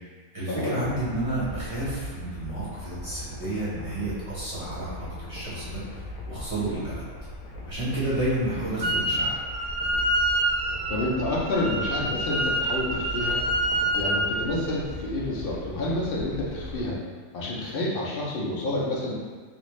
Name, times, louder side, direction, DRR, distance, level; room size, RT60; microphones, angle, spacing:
voice 1, 0.3-5.8 6.3-7.0 7.7-9.3, right 1 dB, 25° right, -11 dB, 0.9 m, -30 dB
sound 1, 0.8-16.9, left 1 dB, 90° left, 1.1 m, -39 dB
voice 2, 8.8-9.3 10.9-13.4 13.9-17.0 17.3-19.1, left 1 dB, 60° left, -5 dB, 0.6 m, -29 dB
Wind instrument woodwind instrument, 8.8-9.2 9.5-14.3, right 1 dB, 70° right, 0.4 m, -27 dB
3.4 x 2.5 x 3.1 m, 1.5 s
omnidirectional pair, 1.5 m